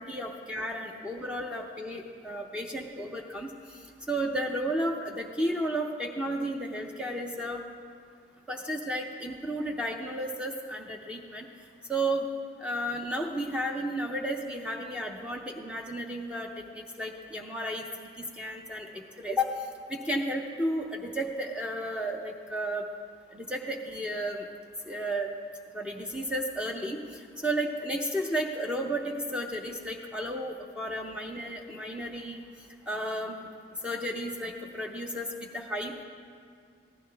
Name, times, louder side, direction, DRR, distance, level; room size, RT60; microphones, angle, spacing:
voice 1, 0.0-3.5 4.1-7.6 8.5-11.5 11.9-12.3 12.6-16.5 16.7-17.8 18.2-19.5 19.9-22.8 23.3-24.5 24.9-25.3 25.7-27.0 27.4-32.4 32.9-33.4 33.8-35.3 35.5-36.0, right 1 dB, 5° right, 1 dB, 0.6 m, -33 dB
15.0 x 11.5 x 3.4 m, 2.1 s
head